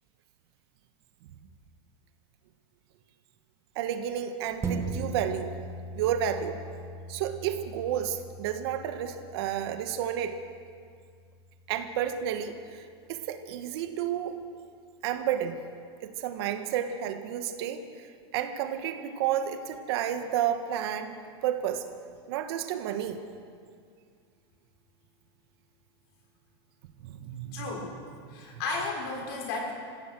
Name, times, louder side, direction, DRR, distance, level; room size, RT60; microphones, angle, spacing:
voice 1, 3.7-5.5 5.9-6.6 7.1-10.4 11.7-12.8 13.1-14.4 15.0-15.6 16.0-17.8 18.3-21.9 22.3-23.2 27.0-27.7, right 10 dB, 70° right, 7 dB, 1.8 m, -31 dB
sound 1, 4.6-13.4 13.9-14.0, right 2 dB, 20° right, 1.7 m, -40 dB
voice 2, 27.5-27.9 28.3-29.7, left 3 dB, 65° left, 0 dB, 6.6 m, -33 dB
26.5 x 16.0 x 6.4 m, 2.2 s
supercardioid pair, 145°, 14 cm